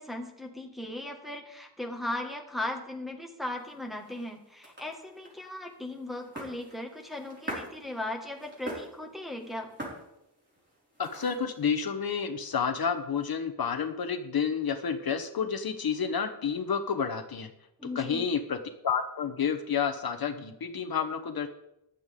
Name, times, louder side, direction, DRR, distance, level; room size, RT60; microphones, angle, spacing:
voice 1, 0.0-9.7 17.8-18.3, left 1 dB, ahead, 1 dB, 1.7 m, -37 dB
sound 1, 3.5-11.6, right 1 dB, 25° right, 5.0 m, -45 dB
voice 2, 11.0-17.5 17.9-18.6 18.8-21.5, left 6 dB, 60° left, 8 dB, 1.0 m, -30 dB
15.0 x 11.0 x 3.7 m, 0.84 s
wide cardioid pair, 120°, 42 cm